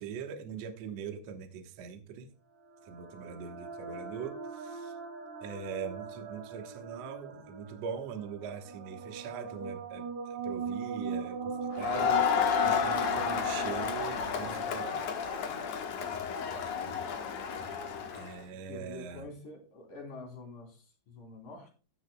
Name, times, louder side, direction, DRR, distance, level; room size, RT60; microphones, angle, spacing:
voice 1, 0.0-2.3 2.8-4.9 5.4-15.1 18.1-19.3, right 7 dB, 80° right, 1.4 m, -42 dB
sound 1, 2.5-16.2, right 5 dB, 55° right, 2.9 m, -41 dB
Crowd, 11.8-18.3, left 7 dB, 70° left, 1.6 m, -31 dB
voice 2, 18.7-21.7, left 2 dB, 50° left, 4.6 m, -47 dB
14.5 x 10.0 x 2.3 m
omnidirectional pair, 5.2 m